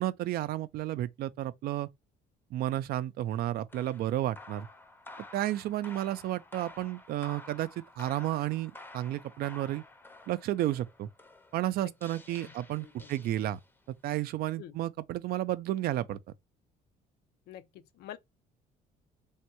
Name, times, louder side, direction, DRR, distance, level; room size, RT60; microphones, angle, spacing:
voice 1, 0.0-1.9 2.5-4.7 5.3-9.8 10.3-11.1 11.5-13.6 14.0-16.2, right 14 dB, 65° right, 0.4 m, -32 dB
sound 1, 3.7-13.9, left 2 dB, 10° left, 0.6 m, -51 dB
voice 2, 12.8-13.1 14.6-14.8 17.5-18.2, left 11 dB, 75° left, 0.5 m, -47 dB
3.4 x 2.2 x 2.9 m
cardioid pair, 110°, 17 cm